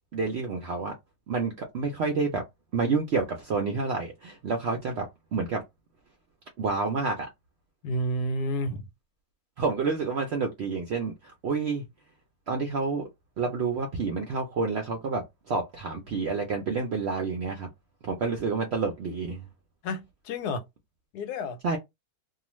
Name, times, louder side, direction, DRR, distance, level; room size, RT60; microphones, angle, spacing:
voice 1, 0.1-0.9 1.3-2.4 2.7-5.6 6.6-7.3 9.6-11.8 12.5-13.1 13.4-17.7 18.0-19.5 21.6-21.8, right 4 dB, 75° right, 0.6 m, -29 dB
voice 2, 7.8-8.9 19.8-20.6 21.1-21.6, equal, 85° left, 1.1 m, -30 dB
2.4 x 2.4 x 3.0 m
omnidirectional pair, 1.7 m